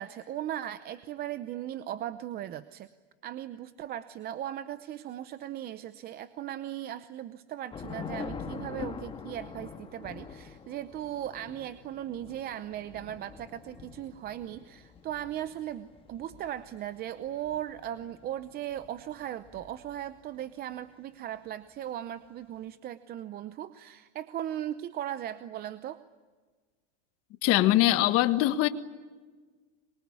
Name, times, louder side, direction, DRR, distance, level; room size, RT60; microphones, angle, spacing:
voice 1, 0.0-2.9 3.2-26.0, right 11 dB, 30° right, 13 dB, 0.8 m, -38 dB
Thunder / Rain, 7.7-20.2, left 6 dB, 15° left, 1.6 m, -45 dB
voice 2, 27.4-28.7, left 15 dB, 40° left, 11 dB, 1.5 m, -22 dB
25.0 x 23.5 x 9.8 m, 1.4 s
supercardioid pair, 150°, 33 cm